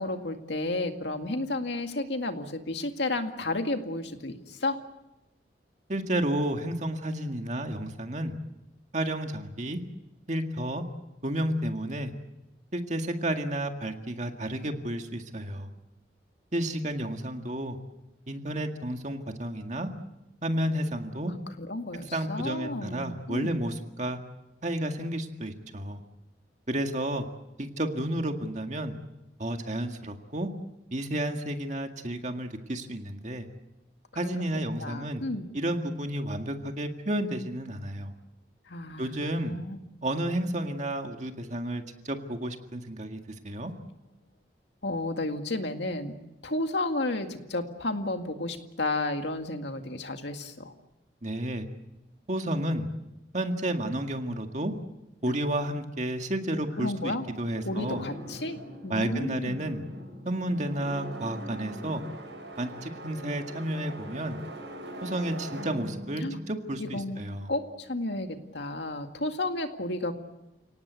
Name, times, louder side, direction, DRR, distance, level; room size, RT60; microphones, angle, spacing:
voice 1, 0.0-4.8 21.2-23.6 34.2-34.4 34.8-35.5 38.7-39.8 44.8-46.2 46.4-50.7 55.3-55.4 56.8-57.3 57.6-58.6 58.8-59.6 66.2-66.4 66.8-67.2 67.5-70.1, left 2 dB, 75° left, 6 dB, 2.1 m, -32 dB
voice 2, 5.9-8.3 8.9-9.8 10.3-10.8 11.2-12.1 12.7-15.7 16.5-17.8 18.3-19.9 20.4-21.3 22.1-24.2 24.6-26.0 26.7-27.3 27.6-28.9 29.4-30.5 30.9-33.5 34.2-35.2 35.5-38.1 39.0-39.5 40.0-43.2 43.4-43.7 51.2-51.7 52.3-52.9 53.3-54.7 55.2-58.0 58.9-59.8 60.3-62.0 62.6-64.4 65.0-67.5, right 1 dB, 40° right, 5 dB, 1.9 m, -31 dB
sound 1, 57.6-67.6, equal, 75° right, 7.9 m, -42 dB
30.0 x 18.0 x 8.2 m, 0.96 s
head